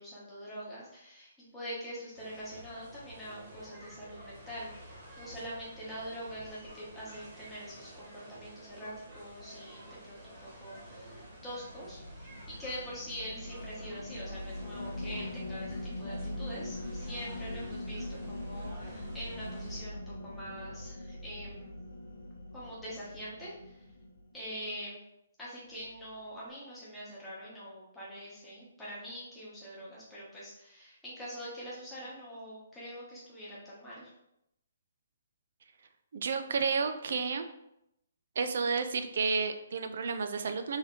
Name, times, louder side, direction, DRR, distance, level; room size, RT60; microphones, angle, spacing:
voice 1, 0.0-12.3 12.6-21.8 22.5-23.8 24.3-25.0 25.4-34.1, equal, 5° left, -9 dB, 0.9 m, -44 dB
sound 1, 2.1-19.8, right 1 dB, 20° right, 1.0 m, -51 dB
sound 2, 10.1-24.6, left 1 dB, 70° left, 0.8 m, -42 dB
voice 2, 36.1-37.5 38.4-40.8, right 5 dB, 50° right, 8 dB, 0.4 m, -31 dB
3.5 x 2.6 x 3.6 m, 0.81 s
hypercardioid pair, 175°, 0 cm